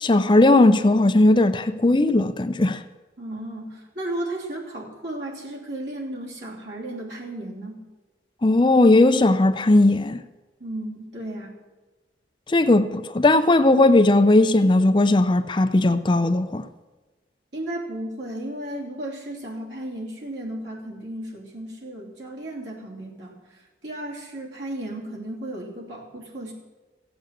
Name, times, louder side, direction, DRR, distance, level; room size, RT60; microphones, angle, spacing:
voice 1, 0.0-2.8 8.4-10.2 12.5-16.6, left 2 dB, 25° left, 0.5 m, -17 dB
voice 2, 3.2-7.8 10.6-11.6 17.5-26.5, right 1 dB, 85° right, 3.1 m, -34 dB
15.0 x 8.1 x 7.6 m
head